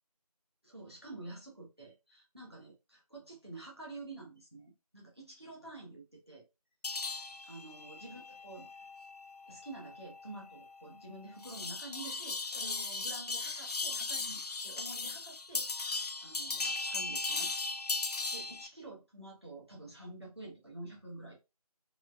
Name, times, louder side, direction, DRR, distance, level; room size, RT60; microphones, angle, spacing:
voice 1, 0.6-6.4 7.4-8.7 9.5-15.7 16.2-17.5 18.3-21.4, right 2 dB, 40° right, 0.7 m, -48 dB
sound 1, 6.8-18.7, left 3 dB, 80° left, 0.4 m, -38 dB
3.1 x 2.2 x 2.3 m
figure-of-eight pair, 180°, 20 cm